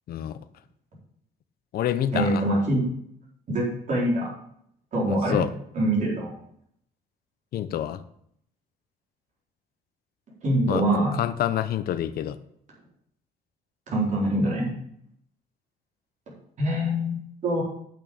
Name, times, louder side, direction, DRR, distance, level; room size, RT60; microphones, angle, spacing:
voice 1, 0.1-0.4 1.7-2.4 5.1-5.5 7.5-8.0 10.7-10.8 11.2-12.4, left 11 dB, 65° left, 12 dB, 0.7 m, -27 dB
voice 2, 2.1-2.9 3.5-4.3 4.9-5.4 5.7-6.3 10.4-11.1 13.9-14.7 16.6-17.6, right 1 dB, 45° right, -4 dB, 4.3 m, -24 dB
8.7 x 6.3 x 7.1 m, 0.70 s
cardioid pair, 110°, 17 cm